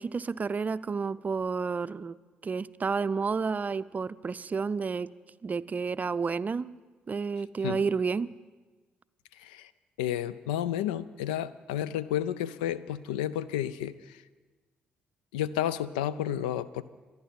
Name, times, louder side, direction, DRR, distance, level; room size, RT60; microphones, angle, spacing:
voice 1, 0.0-2.2 2.4-5.1 5.4-6.7 7.1-8.3, right 5 dB, 35° right, 16 dB, 0.5 m, -30 dB
voice 2, 9.4-9.7 10.0-14.2 15.3-16.8, left 11 dB, 85° left, 18 dB, 0.4 m, -31 dB
26.0 x 9.5 x 5.8 m, 1.3 s
hypercardioid pair, 45°, 4 cm